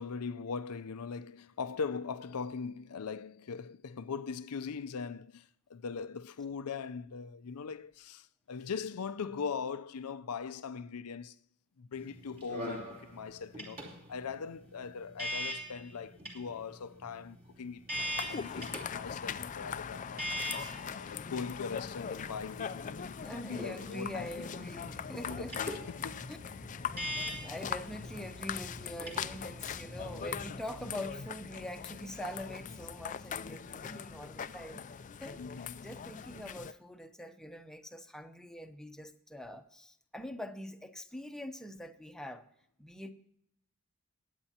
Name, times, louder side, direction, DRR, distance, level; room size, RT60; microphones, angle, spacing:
voice 1, 0.0-11.4 11.8-17.8 18.3-20.3 20.8-23.1 23.5-24.7 25.1-26.3 35.4-35.9, left 5 dB, 85° left, 0.6 m, -40 dB
sound 1, 11.9-30.5, equal, 40° right, 3.2 m, -43 dB
sound 2, 17.9-36.7, left 7 dB, 35° left, 0.4 m, -41 dB
voice 2, 23.2-25.5 26.3-26.4 27.4-42.4 42.8-43.1, left 1 dB, 5° left, 0.8 m, -44 dB
21.0 x 9.1 x 2.9 m
head